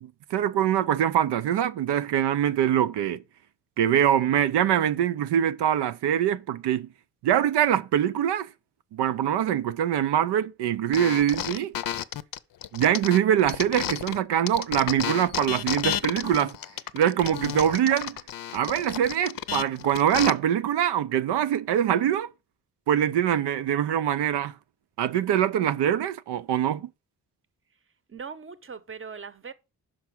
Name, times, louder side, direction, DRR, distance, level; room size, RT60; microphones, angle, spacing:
voice 1, 0.0-3.2 3.8-6.9 7.2-8.5 8.9-11.7 12.7-16.6 16.9-18.2 18.5-22.3 22.9-24.6 25.0-26.9, right 10 dB, 80° right, 0.6 m, -24 dB
sound 1, 10.9-14.2 14.5-20.3, left 10 dB, 60° left, 0.6 m, -32 dB
voice 2, 28.1-29.5, right 5 dB, 30° right, 0.8 m, -40 dB
5.9 x 4.6 x 6.0 m
cardioid pair, 75°, 40 cm